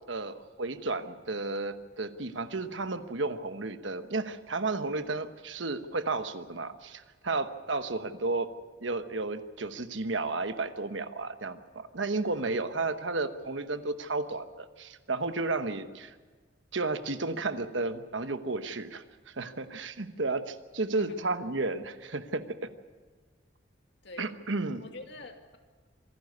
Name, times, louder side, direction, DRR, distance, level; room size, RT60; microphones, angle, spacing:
voice 1, 0.1-8.5 8.8-16.1 16.7-22.7 24.2-24.8, right 3 dB, 80° right, 10 dB, 1.1 m, -33 dB
voice 2, 24.0-24.3 24.8-25.6, left 2 dB, 65° left, 4 dB, 2.3 m, -45 dB
26.0 x 12.0 x 9.6 m, 1.4 s
head